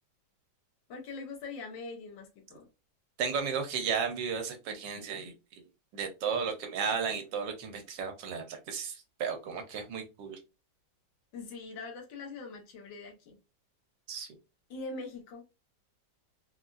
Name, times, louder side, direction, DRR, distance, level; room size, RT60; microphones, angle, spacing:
voice 1, 0.9-2.7 11.3-13.4 14.7-15.4, left 3 dB, 85° left, 4 dB, 1.6 m, -42 dB
voice 2, 3.2-5.3 5.9-10.4 14.1-14.3, right 6 dB, 75° right, 5 dB, 1.4 m, -34 dB
4.1 x 2.3 x 2.4 m, 0.27 s
omnidirectional pair, 2.0 m